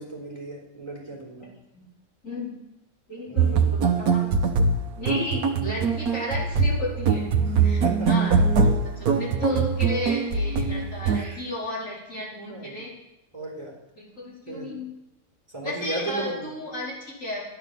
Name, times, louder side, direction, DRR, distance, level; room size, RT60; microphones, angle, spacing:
voice 1, 0.0-1.5 3.2-3.7 7.6-8.4 11.1-11.4 12.5-12.8 13.3-13.7 14.5-14.8 15.5-16.5, right 1 dB, 20° right, -2 dB, 3.9 m, -36 dB
voice 2, 3.1-4.3 4.9-7.3 7.6-8.4 8.8-12.9 14.0-14.9 15.6-17.4, left 1 dB, 60° left, -5 dB, 4.6 m, -33 dB
sound 1, 3.4-11.2, right 5 dB, 80° right, 1.4 m, -22 dB
12.5 x 10.0 x 7.0 m, 0.92 s
omnidirectional pair, 1.5 m